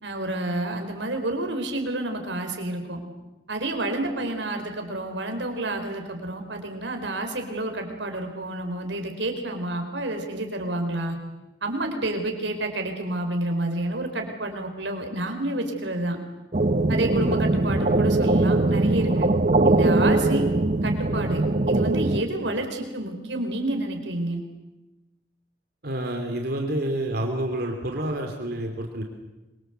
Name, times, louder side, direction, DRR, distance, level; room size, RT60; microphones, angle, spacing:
voice 1, 0.0-3.0 3.5-11.2 11.6-16.2 16.9-19.3 19.6-20.5 20.8-24.4, right 1 dB, 85° right, 5 dB, 4.9 m, -29 dB
sound 1, 16.5-22.2, right 2 dB, 45° right, 1.1 m, -21 dB
voice 2, 25.8-29.0, right 1 dB, 60° right, 3 dB, 2.9 m, -28 dB
26.5 x 23.5 x 8.1 m, 1.0 s
head